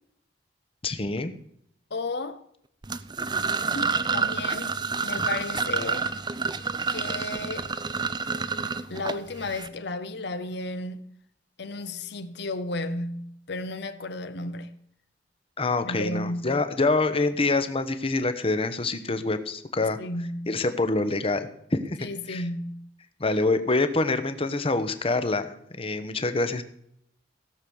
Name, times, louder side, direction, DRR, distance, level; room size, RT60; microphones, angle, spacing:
voice 1, 0.8-1.3 5.2-5.3 15.6-20.0 20.5-22.4 23.2-26.6, left 3 dB, 30° left, 1.0 m, -26 dB
voice 2, 1.9-2.4 3.7-4.8 5.0-6.1 6.9-7.7 8.9-11.1 11.6-14.7 15.8-16.6 19.8-20.5 22.0-22.9, left 2 dB, 65° left, 1.0 m, -33 dB
sound 1, 2.8-9.7, right 5 dB, 25° right, 0.5 m, -29 dB
16.5 x 6.4 x 7.1 m
head